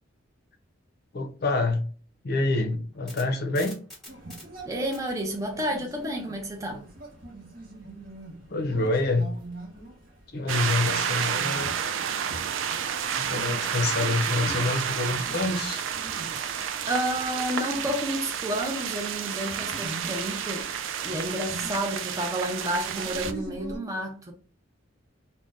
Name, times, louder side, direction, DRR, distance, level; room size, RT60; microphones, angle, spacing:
voice 1, 1.1-1.9 2.2-3.8 8.5-9.3 10.3-11.7 13.2-15.8, left 2 dB, 55° left, 0.5 m, -27 dB
sound 1, 2.7-6.9, left 1 dB, ahead, 0.9 m, -48 dB
sound 2, 4.1-23.8, right 1 dB, 50° right, 0.9 m, -43 dB
voice 2, 4.7-6.8 16.9-20.7 21.0-24.3, right 1 dB, 15° right, 0.5 m, -30 dB
sound 3, 10.5-23.3, right 8 dB, 75° right, 0.3 m, -30 dB
2.5 x 2.1 x 3.2 m
head